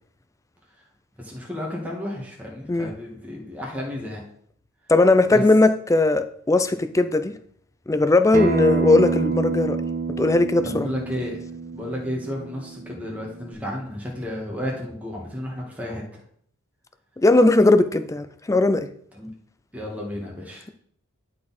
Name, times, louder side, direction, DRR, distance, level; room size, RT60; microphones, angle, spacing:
voice 1, 1.2-4.2 5.3-5.4 10.6-11.4 11.7-16.2 19.1-19.3 19.7-20.6, left 1 dB, 5° right, -3 dB, 1.7 m, -32 dB
voice 2, 4.9-7.3 7.9-9.8 10.2-10.9 17.2-18.9, left 2 dB, 15° left, 11 dB, 0.4 m, -18 dB
Acoustic guitar, 8.3-13.5, right 4 dB, 40° right, 0.8 m, -27 dB
11.5 x 4.2 x 4.2 m, 0.64 s
head